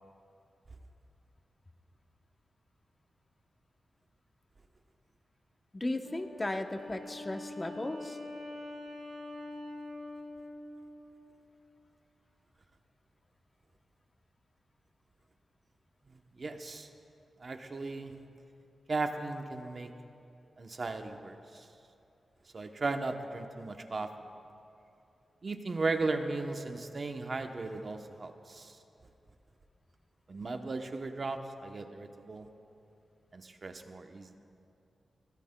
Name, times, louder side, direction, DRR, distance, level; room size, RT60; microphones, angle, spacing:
voice 1, 5.7-8.2, left 2 dB, 20° left, 6 dB, 0.7 m, -36 dB
Wind instrument woodwind instrument, 6.0-11.4, left 2 dB, 85° right, 2.5 m, -45 dB
voice 2, 16.1-16.9 17.4-18.2 18.9-19.9 20.6-21.7 22.5-24.1 25.4-28.8 30.3-32.5 33.3-34.3, right 3 dB, 40° right, 6 dB, 0.8 m, -36 dB
22.0 x 16.0 x 2.2 m, 2.7 s
wide cardioid pair, 115°, 0 cm